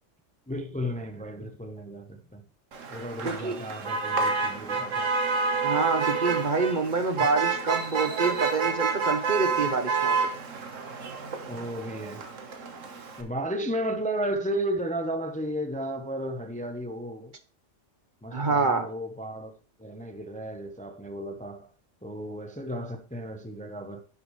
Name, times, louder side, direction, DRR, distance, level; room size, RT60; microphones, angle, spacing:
voice 1, 0.5-2.4 2.9-5.1 11.5-12.2 13.2-17.4 18.2-19.5 19.8-21.7 22.0-24.0, equal, 10° left, 0.7 m, -33 dB
Motor vehicle (road), 2.7-13.2, right 5 dB, 85° right, 1.7 m, -29 dB
voice 2, 3.2-3.6 5.6-10.2 18.3-18.9, right 3 dB, 45° right, 1.0 m, -27 dB
11.0 x 7.0 x 3.2 m
omnidirectional pair, 1.3 m